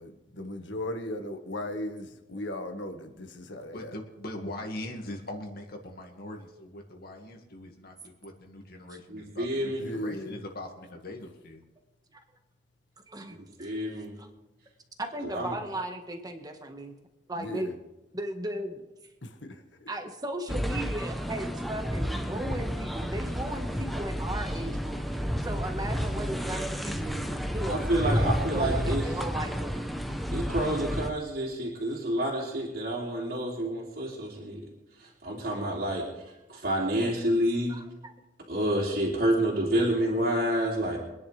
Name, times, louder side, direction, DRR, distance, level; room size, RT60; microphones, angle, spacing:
voice 1, 0.0-3.9 9.8-10.3 17.4-17.7 19.2-19.5, left 1 dB, 80° left, 5 dB, 1.7 m, -36 dB
voice 2, 3.6-11.6, left 1 dB, 60° left, 2 dB, 2.1 m, -41 dB
voice 3, 9.1-9.9 13.3-14.1 15.3-15.5 27.7-29.0 30.3-34.7 35.0-36.1 36.5-37.8 38.5-41.0, right 1 dB, 60° right, -5 dB, 3.0 m, -28 dB
voice 4, 13.1-13.8 14.2-14.3 15.0-16.9 17.3-17.8 18.1-18.8 19.9-25.0 25.4-27.2 27.5-29.7 37.7-38.1, right 1 dB, 20° right, 5 dB, 1.5 m, -36 dB
sound 1, 20.5-31.1, equal, ahead, 1.0 m, -31 dB
25.0 x 10.5 x 3.5 m, 1.0 s
head